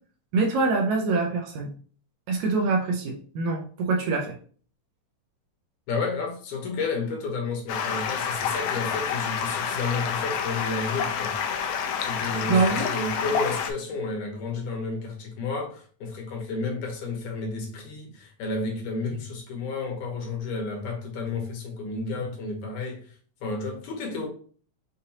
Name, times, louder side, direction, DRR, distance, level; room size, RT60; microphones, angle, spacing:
voice 1, 0.3-1.7 2.3-4.4 12.5-12.9, right 3 dB, 75° right, 1.9 m, -24 dB
voice 2, 5.9-11.4 12.0-23.1 23.4-24.3, left 3 dB, 70° left, 2.4 m, -31 dB
Stream, 7.7-13.7, left 7 dB, 90° left, 2.2 m, -28 dB
6.6 x 2.6 x 2.7 m
omnidirectional pair, 3.6 m